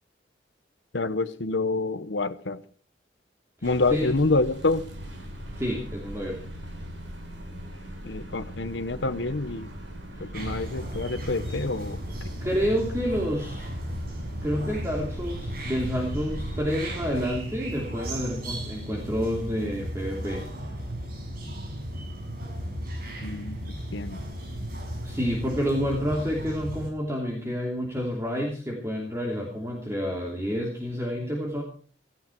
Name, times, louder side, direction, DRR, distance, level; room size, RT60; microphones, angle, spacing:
voice 1, 0.9-2.6 3.6-4.8 8.0-9.7 10.2-12.0 23.2-23.6 23.9-24.2, left 3 dB, 70° left, 11 dB, 0.9 m, -27 dB
voice 2, 3.6-4.1 5.6-6.4 10.2-10.3 12.4-13.7 14.4-20.5 25.0-31.6, equal, 15° right, -1 dB, 2.9 m, -29 dB
sound 1, 3.6-17.3, equal, 75° right, 7.8 m, -40 dB
sound 2, 10.3-26.9, equal, 50° right, 6.3 m, -35 dB
17.0 x 15.0 x 4.5 m, 0.43 s
head